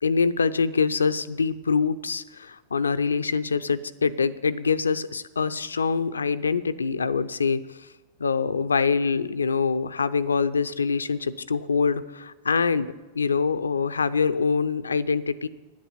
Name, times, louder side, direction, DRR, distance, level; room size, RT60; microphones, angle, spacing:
voice 1, 0.0-7.6 8.2-15.5, left 5 dB, 80° left, 15 dB, 0.5 m, -24 dB
9.9 x 8.6 x 9.4 m, 1.2 s
figure-of-eight pair, 95°, 0 cm